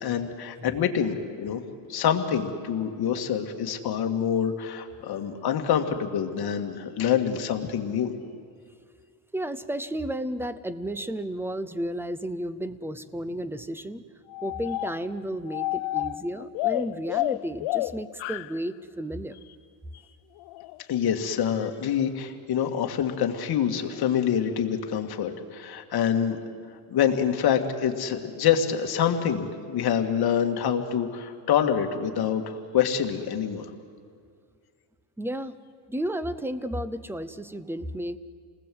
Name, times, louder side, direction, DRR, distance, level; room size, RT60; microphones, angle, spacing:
voice 1, 0.0-1.6 1.9-8.1 20.9-26.4 26.9-33.7, left 8 dB, 50° left, 4 dB, 2.0 m, -26 dB
voice 2, 9.3-14.0 14.4-19.4 35.2-35.6 35.9-38.2, right 1 dB, 5° right, 14 dB, 0.6 m, -32 dB
sound 1, 14.3-15.2 15.5-18.6 20.4-20.8 21.4-21.7, left 18 dB, 65° left, 0.6 m, -30 dB
28.5 x 20.0 x 7.7 m, 2.2 s
cardioid pair, 150°, 49 cm